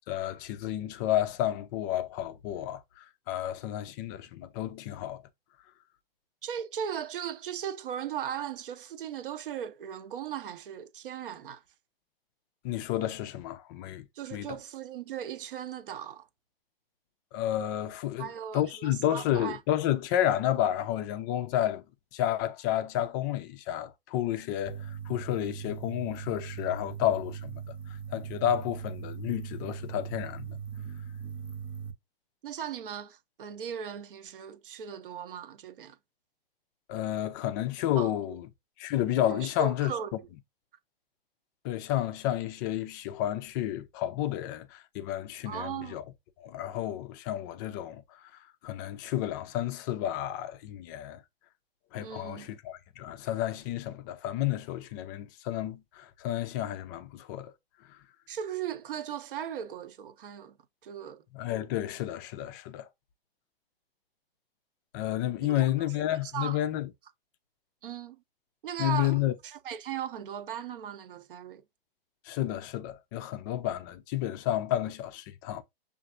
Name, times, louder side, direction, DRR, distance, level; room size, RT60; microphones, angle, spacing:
voice 1, 0.0-5.2 12.6-14.0 14.3-14.6 17.3-21.8 22.1-27.6 27.9-30.6 36.9-38.5 38.8-39.9 41.6-46.0 46.4-48.2 48.6-51.2 51.9-57.5 57.9-58.0 61.3-62.9 64.9-66.9 68.8-69.3 72.2-75.6, left 12 dB, 20° left, 0.3 m, -31 dB
voice 2, 6.4-11.6 14.1-16.3 18.2-19.6 32.4-36.0 38.0-38.1 39.3-40.3 45.5-46.0 52.0-52.5 58.3-60.6 60.8-61.2 65.4-65.6 66.1-66.6 67.8-68.2 68.6-71.6, right 9 dB, 60° right, 0.7 m, -38 dB
sound 1, 24.7-31.9, right 8 dB, 5° right, 0.8 m, -40 dB
6.4 x 2.5 x 2.5 m
figure-of-eight pair, 115°, 30 cm